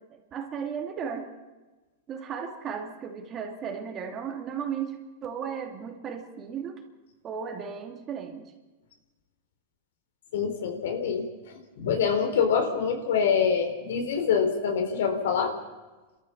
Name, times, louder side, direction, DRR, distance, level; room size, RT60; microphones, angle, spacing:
voice 1, 0.1-1.3 2.1-6.8 7.2-8.5, right 7 dB, 30° right, 4 dB, 2.7 m, -35 dB
voice 2, 10.3-11.2 11.8-15.5, left 6 dB, 80° left, 6 dB, 3.8 m, -25 dB
28.5 x 13.5 x 7.3 m, 1.2 s
supercardioid pair, 145°, 0 cm